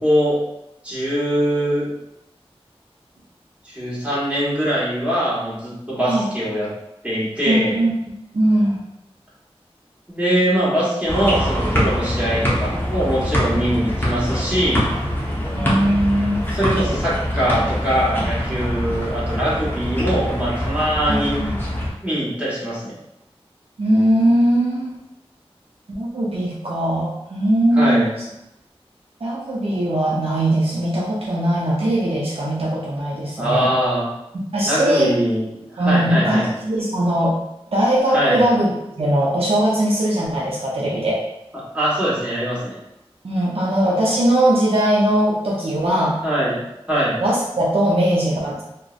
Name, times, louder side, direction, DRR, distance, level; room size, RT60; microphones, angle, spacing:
voice 1, 0.0-0.4 0.8-1.9 3.6-6.7 7.0-7.8 10.1-14.9 16.5-21.4 22.0-23.0 27.7-28.1 33.4-34.1 34.6-35.5 35.7-36.5 38.1-38.4 41.7-42.8 46.2-46.6 46.9-47.2, equal, 10° right, -9 dB, 1.1 m, -22 dB
voice 2, 7.4-7.9 8.3-8.8 15.5-16.4 21.1-21.6 23.8-25.0 25.9-28.1 29.2-33.7 34.5-35.1 35.8-37.3 37.7-41.2 43.2-46.2 47.2-48.6, right 1 dB, 65° right, -5 dB, 0.5 m, -20 dB
sound 1, 11.1-21.9, equal, 20° left, 0.7 m, -24 dB
2.5 x 2.0 x 2.4 m, 0.86 s
wide cardioid pair, 50°, 10 cm